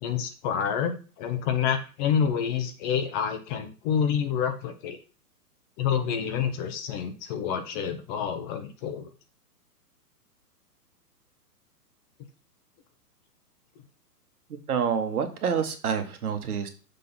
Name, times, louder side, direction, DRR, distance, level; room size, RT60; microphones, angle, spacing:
voice 1, 0.0-5.0 5.8-9.1, left 7 dB, 30° left, 7 dB, 1.0 m, -28 dB
voice 2, 14.7-16.7, right 7 dB, 65° right, 7 dB, 1.6 m, -27 dB
6.6 x 4.0 x 5.5 m, 0.35 s
figure-of-eight pair, 120°, 48 cm